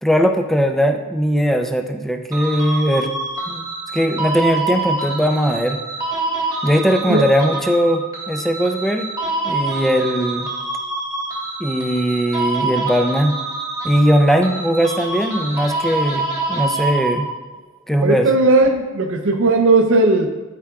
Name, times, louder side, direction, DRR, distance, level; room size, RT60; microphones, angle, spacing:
voice 1, 0.0-3.1 3.5-3.6 3.9-5.8 6.6-9.1 9.4-10.5 11.6-13.4 13.8-17.3 17.9-18.3, equal, ahead, 4 dB, 0.4 m, -19 dB
sound 1, 2.3-17.5, right 3 dB, 15° right, 1.2 m, -26 dB
voice 2, 18.0-20.3, right 3 dB, 65° right, 5 dB, 0.6 m, -16 dB
13.0 x 4.8 x 2.3 m, 1.2 s
head